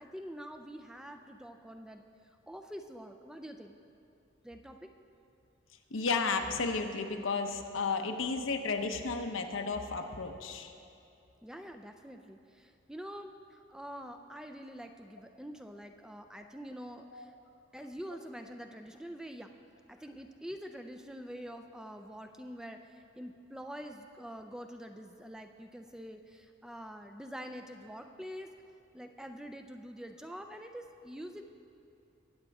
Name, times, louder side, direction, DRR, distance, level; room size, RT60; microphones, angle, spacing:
voice 1, 0.0-2.0 2.5-3.8 4.4-4.9 11.4-17.3 17.7-19.5 19.9-28.5 28.9-31.4, equal, 5° right, 6 dB, 0.4 m, -46 dB
voice 2, 5.9-10.7 17.1-17.2, left 4 dB, 85° left, 5 dB, 0.9 m, -33 dB
22.0 x 8.1 x 3.5 m, 2.6 s
head